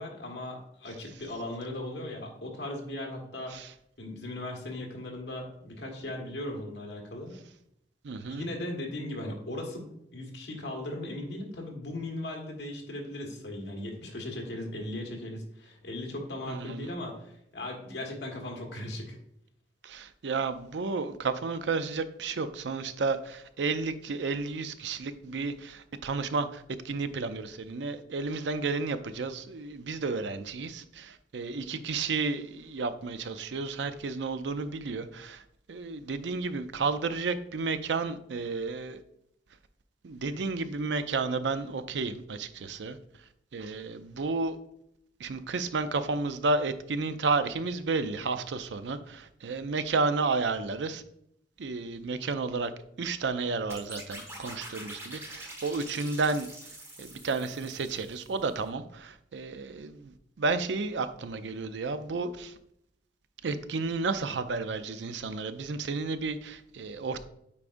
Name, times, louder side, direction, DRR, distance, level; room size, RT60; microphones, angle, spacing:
voice 1, 0.0-3.6 4.0-7.4 8.3-19.2, left 1 dB, 75° left, 1 dB, 1.6 m, -38 dB
voice 2, 8.0-8.5 16.5-16.9 19.8-35.4 35.7-39.0 40.0-43.0 43.5-44.6 45.2-51.0 51.6-52.7 53.0-56.5 57.0-62.5 63.4-67.2, right 4 dB, 85° right, 11 dB, 0.5 m, -32 dB
sound 1, 53.7-58.5, right 1 dB, 15° right, 1.3 m, -45 dB
8.5 x 4.8 x 2.6 m, 0.74 s
head